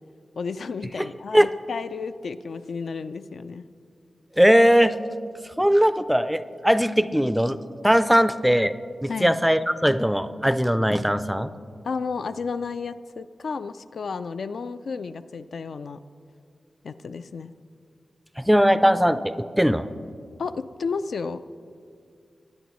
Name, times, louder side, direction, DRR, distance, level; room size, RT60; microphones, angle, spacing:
voice 1, 0.4-3.7 9.1-9.3 11.8-16.0 16.8-17.5 20.4-21.4, left 5 dB, 75° left, 11 dB, 0.3 m, -32 dB
voice 2, 4.4-5.0 5.4-7.6 7.8-8.7 9.0-11.5 18.4-19.9, equal, 5° right, 12 dB, 0.4 m, -20 dB
20.5 x 9.4 x 3.1 m, 2.2 s
wide cardioid pair, 120°, 0 cm